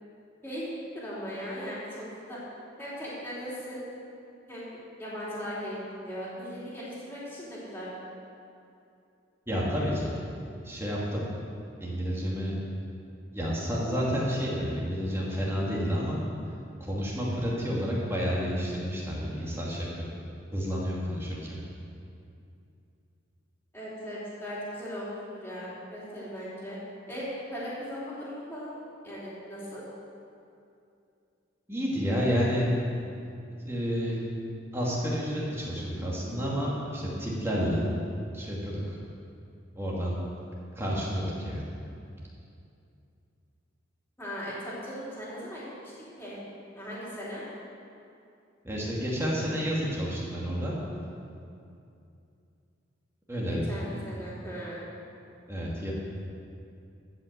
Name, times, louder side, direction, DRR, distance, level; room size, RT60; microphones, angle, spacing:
voice 1, 0.9-2.4 2.8-3.8 4.5-5.7 6.0-7.9 23.7-26.8 27.1-27.2 27.5-28.8 29.0-29.8 44.2-46.4 46.7-47.4 53.5-54.8, equal, 10° left, -9 dB, 3.4 m, -38 dB
voice 2, 9.5-10.1 10.6-11.2 11.8-12.6 13.3-16.2 16.8-20.1 20.5-21.6 31.7-32.7 33.5-34.2 34.7-37.9 38.3-39.0 39.7-40.2 40.8-41.6 48.6-50.8 53.3-54.0 55.5-55.9, equal, 15° right, -5 dB, 2.3 m, -30 dB
13.5 x 6.0 x 8.0 m, 2.6 s
head